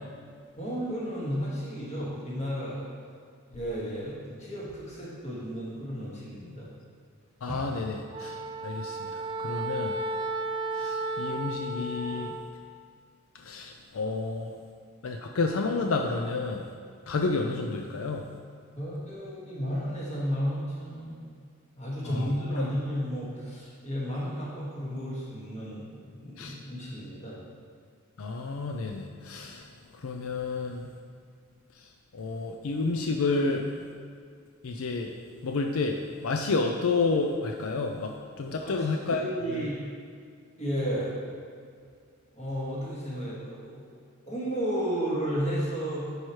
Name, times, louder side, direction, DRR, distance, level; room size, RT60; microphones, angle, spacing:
voice 1, 0.6-2.8 3.5-6.7 7.5-7.7 18.7-21.1 21.8-27.4 38.5-39.8 40.6-41.2 42.3-43.8 44.3-46.1, equal, 35° left, -7 dB, 1.9 m, -33 dB
voice 2, 7.4-8.4 8.6-9.9 10.8-12.3 13.4-14.5 15.0-16.6 17.1-18.3 22.0-22.3 22.6-22.7 26.4-26.6 28.2-29.6 30.0-30.9 32.1-33.6 34.6-35.1 35.4-36.0 36.2-38.1 38.4-39.2 39.5-39.7, left 3 dB, 80° left, 3 dB, 0.5 m, -30 dB
Wind instrument woodwind instrument, 8.1-12.5, right 2 dB, 20° right, 0.5 m, -33 dB
10.5 x 4.8 x 3.2 m, 2.1 s
head